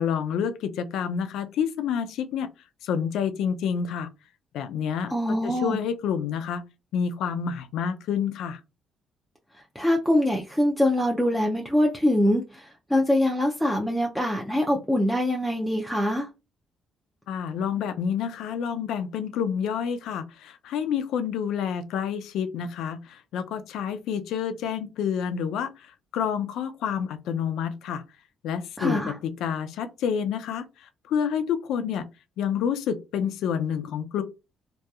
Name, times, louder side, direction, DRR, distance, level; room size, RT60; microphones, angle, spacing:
voice 1, 0.0-2.5 2.8-4.1 4.5-6.6 6.9-8.6 17.3-28.0 28.4-32.0 32.4-34.2, left 7 dB, 85° left, 0.3 m, -28 dB
voice 2, 5.1-5.8 9.8-16.3 28.8-29.1, left 1 dB, ahead, 0.4 m, -24 dB
2.7 x 2.2 x 2.3 m
cardioid pair, 90°, 0 cm